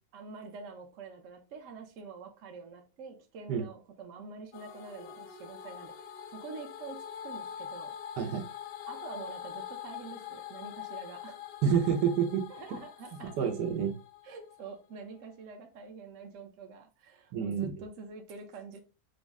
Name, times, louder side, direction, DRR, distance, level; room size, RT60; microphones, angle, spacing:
voice 1, 0.1-7.9 8.9-11.4 12.5-13.5 14.2-18.8, right 5 dB, 55° right, 1.0 m, -46 dB
sound 1, 4.5-14.7, left 9 dB, 85° left, 1.2 m, -44 dB
voice 2, 11.6-12.8 13.4-13.9 17.3-17.7, right 7 dB, 75° right, 1.4 m, -28 dB
5.2 x 2.1 x 3.5 m
omnidirectional pair, 1.8 m